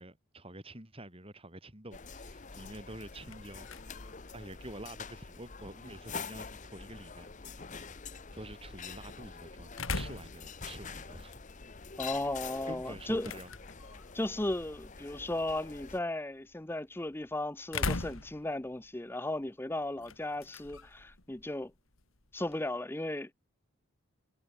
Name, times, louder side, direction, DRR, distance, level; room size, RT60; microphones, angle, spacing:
voice 1, 0.0-3.8 4.3-7.7 8.3-11.4 12.7-13.6 13.9-14.0, right 1 dB, 25° right, 4.2 m, -48 dB
sound 1, 1.9-16.0, left 5 dB, 35° left, 0.9 m, -46 dB
sound 2, 2.9-22.7, left 3 dB, 75° left, 2.8 m, -44 dB
voice 2, 12.0-13.3 14.1-21.7 22.3-23.3, left 1 dB, 10° left, 0.5 m, -35 dB
head